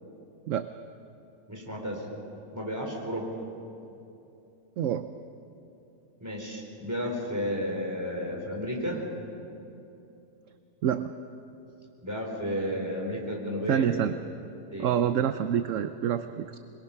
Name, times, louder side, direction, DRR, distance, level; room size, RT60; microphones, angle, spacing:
voice 1, 1.5-2.1 2.5-3.3 6.2-9.0 12.0-13.9 14.7-15.0, equal, 10° right, -1 dB, 4.1 m, -32 dB
voice 2, 4.8-5.1 10.8-11.1 13.7-14.2 14.8-16.6, right 9 dB, 65° right, 10 dB, 0.9 m, -27 dB
26.0 x 21.5 x 5.7 m, 2.8 s
omnidirectional pair, 1.7 m